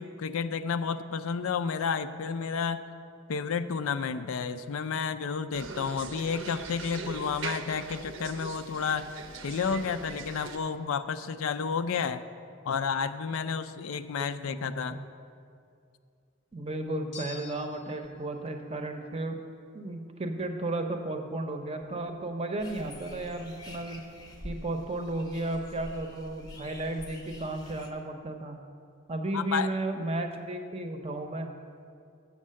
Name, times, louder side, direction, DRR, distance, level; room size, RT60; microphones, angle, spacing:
voice 1, 0.0-2.8 3.3-9.1 9.4-12.2 12.6-15.0 29.3-29.7, left 6 dB, 80° left, 11 dB, 0.4 m, -31 dB
sound 1, 5.5-10.6, right 4 dB, 65° right, 0.6 m, -41 dB
voice 2, 14.2-15.0 16.5-19.4 19.7-24.0 24.4-28.6 29.1-31.5, right 2 dB, 30° right, 5 dB, 0.6 m, -34 dB
sound 2, 17.1-18.1, left 4 dB, 55° left, 0.7 m, -45 dB
sound 3, 22.6-27.9, left 1 dB, 20° left, 0.7 m, -47 dB
7.2 x 6.5 x 7.5 m, 2.4 s
head